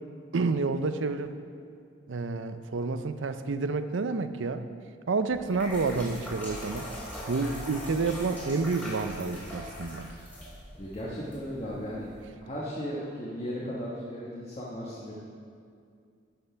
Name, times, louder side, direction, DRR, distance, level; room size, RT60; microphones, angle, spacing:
voice 1, 0.3-1.3 2.1-4.6 5.1-6.9 7.3-10.1, right 4 dB, 90° right, 10 dB, 0.6 m, -29 dB
sound 1, 5.3-12.3, left 1 dB, 10° left, 2.5 m, -42 dB
voice 2, 10.8-12.1 12.4-15.1, equal, 35° left, -6 dB, 1.4 m, -36 dB
12.5 x 5.6 x 5.7 m, 2.3 s
head